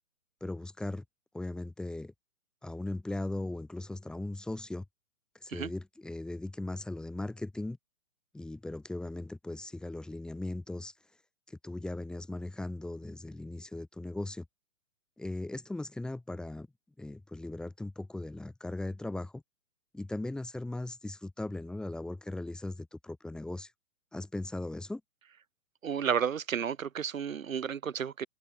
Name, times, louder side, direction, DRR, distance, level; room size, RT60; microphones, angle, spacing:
voice 1, 0.4-1.0 1.3-2.1 2.6-4.8 5.4-7.8 8.3-10.9 11.5-14.4 15.2-16.7 17.0-19.4 19.9-23.7 24.1-25.0, left 2 dB, ahead, 2.9 m, -38 dB
voice 2, 25.8-28.3, right 7 dB, 65° right, 6.3 m, -32 dB
hypercardioid pair, 175°, 43 cm